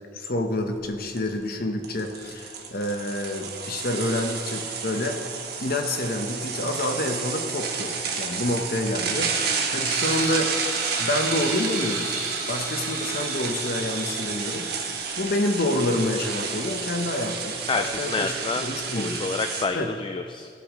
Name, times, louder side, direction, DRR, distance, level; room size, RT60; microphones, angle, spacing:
voice 1, 0.1-5.3 5.6-9.4 9.7-10.5 11.0-12.1 12.5-14.9 15.2-19.2 19.7-19.9, left 1 dB, 55° left, 5 dB, 1.0 m, -28 dB
sound 1, 0.7-0.8 1.2-1.3 1.8-19.6, right 5 dB, 60° right, 1.3 m, -30 dB
sound 2, 9.9-15.5, right 3 dB, 85° right, 2.8 m, -35 dB
voice 2, 17.7-20.5, left 4 dB, 25° left, 6 dB, 0.3 m, -29 dB
17.0 x 8.2 x 3.1 m, 2.2 s
head